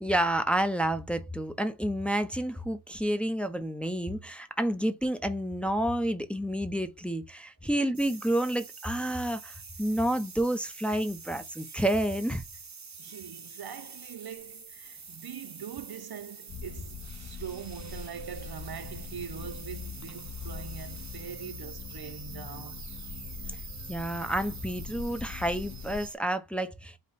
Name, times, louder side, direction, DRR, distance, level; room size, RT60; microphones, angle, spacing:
voice 1, 0.0-12.4 23.5-23.6 23.9-27.0, right 1 dB, 5° left, 0.6 m, -29 dB
sound 1, 7.9-26.1, right 4 dB, 40° right, 0.9 m, -46 dB
voice 2, 13.0-22.9, right 8 dB, 65° right, 0.6 m, -42 dB
sound 2, 16.5-26.1, left 6 dB, 45° left, 0.5 m, -42 dB
5.1 x 2.1 x 4.0 m
wide cardioid pair, 70°, 41 cm